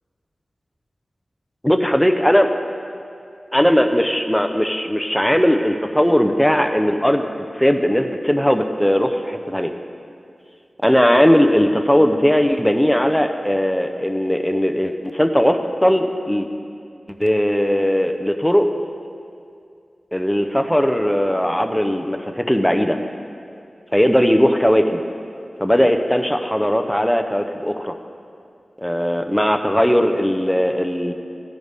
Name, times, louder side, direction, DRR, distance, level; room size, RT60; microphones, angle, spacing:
voice 1, 1.6-2.5 3.5-7.3 7.5-9.7 10.8-16.5 17.2-18.7 20.1-23.0 23.9-25.0 25.6-28.0 28.8-31.1, equal, 5° left, 6 dB, 0.7 m, -18 dB
17.0 x 10.5 x 3.6 m, 2.4 s
wide cardioid pair, 80°, 0 cm